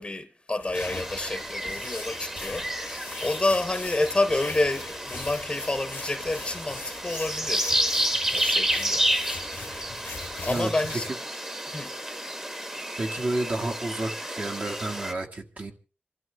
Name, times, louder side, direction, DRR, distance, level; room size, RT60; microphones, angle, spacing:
voice 1, 0.0-7.7 8.3-9.1 10.4-11.1 11.7-12.0, left 2 dB, 25° left, 0.8 m, -29 dB
sound 1, 0.6-11.1, left 4 dB, 70° left, 0.9 m, -41 dB
sound 2, 0.7-15.1, equal, 15° right, 1.1 m, -31 dB
voice 2, 10.4-11.2 13.0-15.7, right 2 dB, 50° right, 1.7 m, -31 dB
27.5 x 12.5 x 3.4 m
wide cardioid pair, 100°, 3 cm